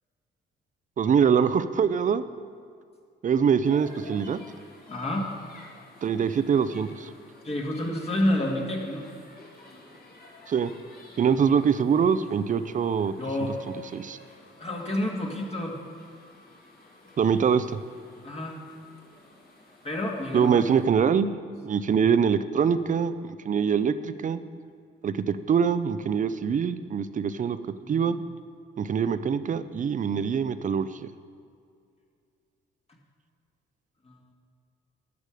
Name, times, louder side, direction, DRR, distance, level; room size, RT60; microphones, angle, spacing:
voice 1, 1.0-2.2 3.2-4.4 6.0-7.1 10.5-10.7 11.2-13.1 13.9-14.2 17.2-17.8 20.3-21.3 21.6-24.4 25.0-27.6 27.9-28.2 28.8-31.0, right 7 dB, 40° right, 13 dB, 0.5 m, -24 dB
sound 1, 3.6-20.9, left 2 dB, 50° left, 2.3 m, -52 dB
voice 2, 4.9-5.3 7.4-9.1 13.2-13.6 14.6-15.8 18.2-18.6 19.8-20.6 27.8-28.1 34.0-34.3, left 1 dB, 30° left, -1 dB, 1.8 m, -29 dB
12.0 x 8.1 x 5.0 m, 2.3 s
cardioid pair, 90°, 20 cm